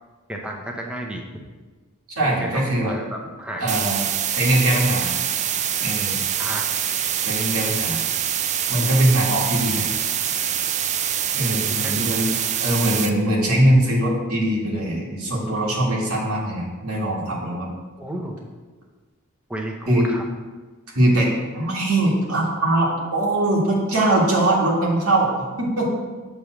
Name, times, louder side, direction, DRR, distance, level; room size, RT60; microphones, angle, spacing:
voice 1, 0.3-1.4 2.2-3.9 6.3-6.6 11.5-12.2 18.0-18.4 19.5-20.2, right 1 dB, 5° right, 1 dB, 0.7 m, -32 dB
voice 2, 2.2-2.9 3.6-5.1 5.8-6.2 7.2-8.0 8.7-9.9 11.3-12.3 12.6-17.7 19.9-20.1 21.0-25.9, right 1 dB, 85° right, -4 dB, 1.8 m, -21 dB
sound 1, 3.7-13.1, right 9 dB, 35° right, 0.3 m, -25 dB
6.9 x 3.4 x 6.0 m, 1.3 s
head